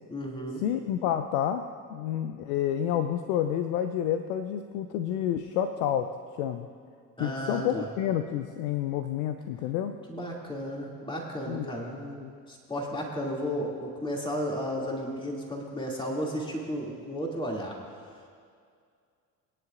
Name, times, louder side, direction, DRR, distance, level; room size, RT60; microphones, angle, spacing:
voice 1, 0.1-0.6 7.2-7.9 10.1-17.8 18.1-18.2, equal, 10° left, -2 dB, 2.6 m, -34 dB
voice 2, 0.6-1.6 1.9-6.1 6.4-6.7 7.2-10.0 11.5-11.7 12.2-12.3, left 10 dB, 60° left, 8 dB, 0.7 m, -29 dB
22.0 x 9.9 x 2.5 m, 2.2 s
figure-of-eight pair, 60°, 44 cm